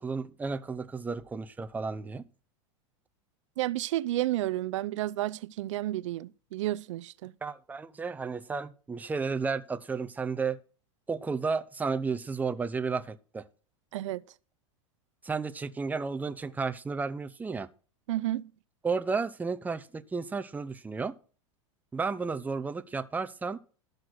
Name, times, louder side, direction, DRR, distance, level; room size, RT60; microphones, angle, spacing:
voice 1, 0.0-2.2 7.4-10.6 11.1-13.5 15.2-17.7 18.8-21.2 21.9-23.6, right 4 dB, 10° right, 0.7 m, -32 dB
voice 2, 3.6-7.3 13.9-14.2 18.1-18.5, right 15 dB, 75° right, 0.5 m, -31 dB
13.0 x 6.5 x 6.0 m
supercardioid pair, 120°, 16 cm